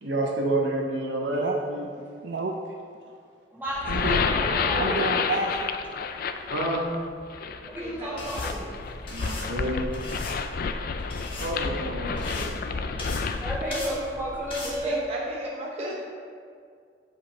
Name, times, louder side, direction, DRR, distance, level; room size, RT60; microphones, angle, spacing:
voice 1, 0.0-1.9 3.1-3.2 6.5-6.8 9.1-10.0 11.4-13.0, right 2 dB, 90° right, -1 dB, 1.1 m, -29 dB
voice 2, 2.2-2.6 3.9-4.5 4.8-5.9, right 3 dB, 70° right, 2 dB, 0.4 m, -30 dB
voice 3, 3.5-5.0 7.7-8.6 13.4-15.0, equal, 10° right, -7 dB, 1.8 m, -32 dB
sound 1, 3.7-13.8, left 5 dB, 55° left, 0.4 m, -30 dB
voice 4, 7.8-8.3 14.6-16.0, right 1 dB, 35° right, -4 dB, 0.9 m, -35 dB
sound 2, 8.2-14.8, left 1 dB, 30° left, 1.3 m, -39 dB
7.4 x 4.9 x 4.1 m, 2.2 s
head